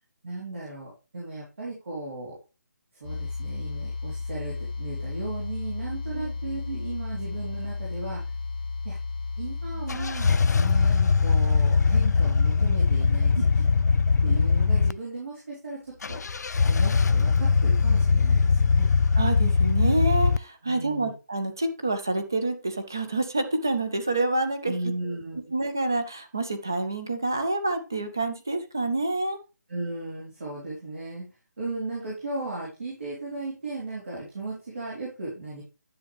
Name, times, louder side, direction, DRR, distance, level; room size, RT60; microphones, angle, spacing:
voice 1, 0.2-2.3 3.0-8.2 8.8-9.0 9.4-13.4 14.2-16.2 16.7-18.9 20.6-21.1 24.6-25.5 29.7-31.3 31.6-35.6, right 2 dB, 45° right, -5 dB, 3.3 m, -36 dB
electric hum, 3.0-11.0, left 4 dB, 25° left, 0.8 m, -33 dB
sound 1, 9.9-14.9 16.0-20.4, left 5 dB, 65° left, 0.3 m, -21 dB
voice 2, 19.1-24.7 25.5-29.4, right 2 dB, 10° right, 8 dB, 0.3 m, -27 dB
10.5 x 6.2 x 3.3 m, 0.29 s
hypercardioid pair, 180°, 10 cm